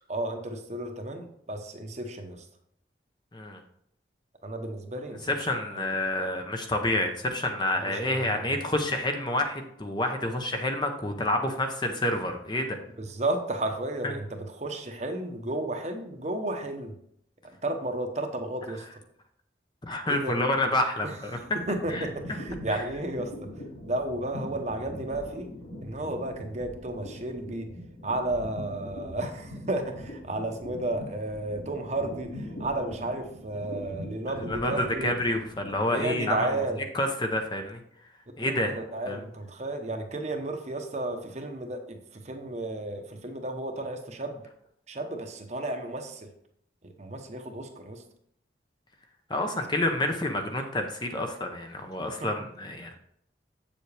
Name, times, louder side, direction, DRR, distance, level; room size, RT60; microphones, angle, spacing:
voice 1, 0.1-2.5 4.4-5.3 5.7-5.8 7.8-8.6 13.0-17.0 17.6-18.9 20.1-20.3 21.0-21.4 21.7-23.5 23.9-25.5 25.8-27.7 28.0-35.1 35.9-36.8 38.4-44.4 44.9-46.3 46.8-48.0 52.2-52.3, right 2 dB, 35° right, 5 dB, 0.9 m, -33 dB
voice 2, 5.2-12.8 14.0-14.1 19.8-21.3 21.9-22.0 22.7-22.8 34.5-36.5 36.9-37.8 38.4-38.7 39.1-39.2 49.3-53.0, left 1 dB, 25° left, 5 dB, 0.8 m, -28 dB
sound 1, 21.2-36.5, equal, 65° left, 3.5 m, -42 dB
7.7 x 7.1 x 3.4 m, 0.70 s
head